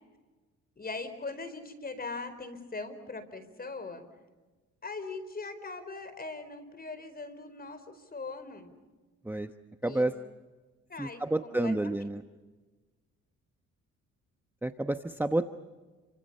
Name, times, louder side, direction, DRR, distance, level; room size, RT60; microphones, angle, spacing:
voice 1, 0.8-4.0 4.8-8.7 9.8-10.0 10.9-12.2, left 3 dB, 30° left, 11 dB, 4.7 m, -41 dB
voice 2, 9.8-10.1 11.0-12.2 14.6-15.5, right 1 dB, 5° right, 7 dB, 1.1 m, -29 dB
30.0 x 25.5 x 5.6 m, 1.3 s
cardioid pair, 90°, 30 cm